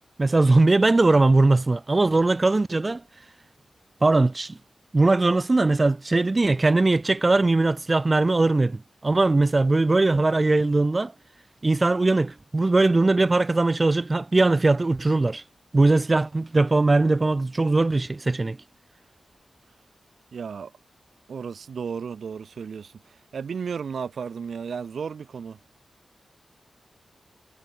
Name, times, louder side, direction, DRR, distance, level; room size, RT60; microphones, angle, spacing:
voice 1, 0.2-3.0 4.0-4.6 4.9-11.1 11.6-15.4 15.7-18.6, right 2 dB, 30° right, 0.5 m, -20 dB
voice 2, 20.3-20.7 21.3-25.6, right 6 dB, 80° right, 3.6 m, -34 dB
wide cardioid pair, 100°, 0 cm